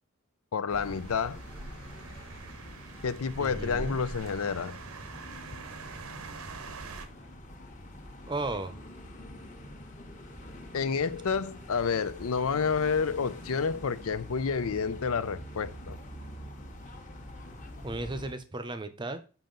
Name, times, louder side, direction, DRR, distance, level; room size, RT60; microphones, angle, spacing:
voice 1, 0.5-1.4 3.0-4.8 10.7-16.0, left 5 dB, 85° left, 0.5 m, -29 dB
sound 1, 0.7-18.3, left 1 dB, 35° left, 1.2 m, -46 dB
sound 2, 0.7-7.1, right 3 dB, 90° right, 0.9 m, -43 dB
voice 2, 3.4-4.0 8.3-8.8 17.8-19.2, right 2 dB, 20° right, 0.6 m, -35 dB
7.2 x 5.5 x 3.9 m
head